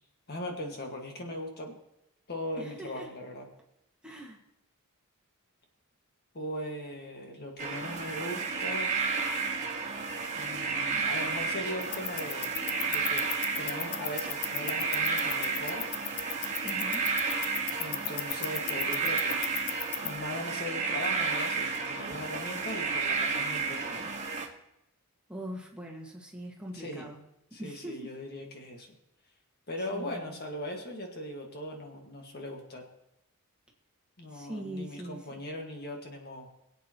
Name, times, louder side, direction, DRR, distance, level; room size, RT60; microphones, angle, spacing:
voice 1, 0.3-1.8 2.3-3.4 6.3-8.9 10.4-12.5 12.9-13.3 13.5-15.9 17.8-19.5 20.0-24.1 26.7-27.1 27.5-28.9 29.7-32.9 34.2-36.5, left 1 dB, 45° left, 2 dB, 1.7 m, -39 dB
voice 2, 2.6-3.1 4.0-4.4 16.6-17.2 25.3-27.2 27.6-28.1 29.9-30.4 34.3-35.4, right 1 dB, 5° right, -1 dB, 1.7 m, -42 dB
sound 1, 7.6-24.5, right 4 dB, 35° right, 1.6 m, -32 dB
sound 2, 11.8-20.2, left 13 dB, 85° left, 0.6 m, -38 dB
22.0 x 8.6 x 3.0 m, 0.85 s
head